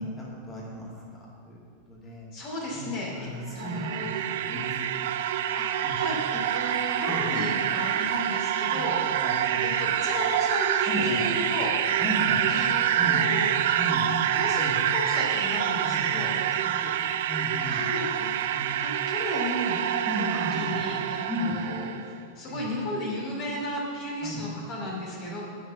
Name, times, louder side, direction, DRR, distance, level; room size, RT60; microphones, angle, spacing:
voice 1, 0.0-1.6 1.9-2.3 2.7-4.1 4.4-4.7 5.8-5.9 7.1-7.4 8.7-9.9 10.9-11.2 12.0-12.4 13.0-13.2 13.8-14.1 14.6-14.8 15.8-16.3 16.8-16.9 17.3-17.8 18.5-18.7 20.1-20.8 21.3-21.6 22.4-22.6 24.2-24.4, equal, 15° left, -6 dB, 2.5 m, -35 dB
voice 2, 2.3-3.3 3.5-4.2 5.6-9.0 9.6-11.8 12.5-13.5 14.3-14.6 14.9-16.3 17.7-19.8 20.2-21.9 22.4-25.4, left 1 dB, 40° left, -3 dB, 2.6 m, -34 dB
sound 1, 3.4-22.1, right 10 dB, 55° right, 0.4 m, -27 dB
8.6 x 6.0 x 7.1 m, 2.4 s
figure-of-eight pair, 90°, 0 cm